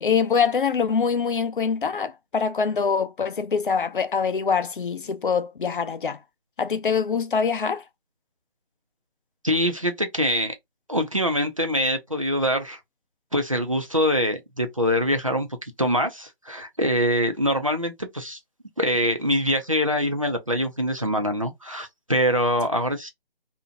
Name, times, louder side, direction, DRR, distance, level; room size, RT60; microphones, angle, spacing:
voice 1, 0.0-6.2 6.6-7.8, left 6 dB, 55° left, 0.5 m, -24 dB
voice 2, 9.4-10.5 10.9-12.8 13.3-18.4 18.8-23.1, equal, 35° right, 0.4 m, -24 dB
2.5 x 2.1 x 2.4 m
figure-of-eight pair, 165°, 30 cm